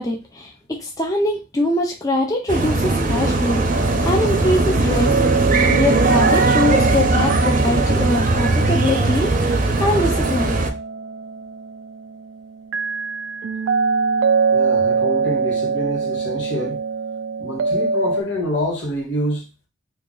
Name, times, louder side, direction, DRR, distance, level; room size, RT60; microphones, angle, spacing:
voice 1, 0.0-5.1 5.4-10.6, left 1 dB, 20° left, 0.5 m, -23 dB
sound 1, 2.5-10.7, right 2 dB, 45° right, 0.6 m, -19 dB
sound 2, 3.7-18.2, right 5 dB, 90° right, 0.3 m, -23 dB
voice 2, 14.5-16.8 17.4-19.5, equal, 75° left, 1.5 m, -26 dB
2.8 x 2.7 x 3.8 m
head